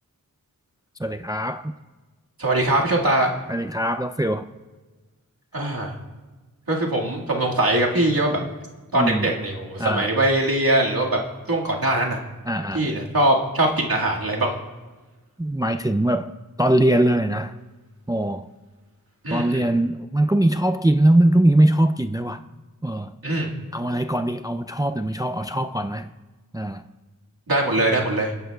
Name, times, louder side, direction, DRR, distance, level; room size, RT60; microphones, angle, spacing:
voice 1, 1.0-1.7 3.5-4.5 8.4-8.5 8.9-9.3 9.8-10.1 12.5-12.9 15.4-16.3 16.6-17.5 18.1-18.5 19.3-22.4 22.8-23.1 23.7-26.1 26.5-26.8, right 1 dB, 10° right, 0.4 m, -21 dB
voice 2, 2.4-3.3 5.5-5.9 6.7-8.4 8.9-11.2 11.5-12.2 12.7-14.5 19.2-19.6 23.2-23.5 27.5-28.3, right 1 dB, 85° right, 2.0 m, -22 dB
27.5 x 10.5 x 2.3 m
wide cardioid pair, 50°, 35 cm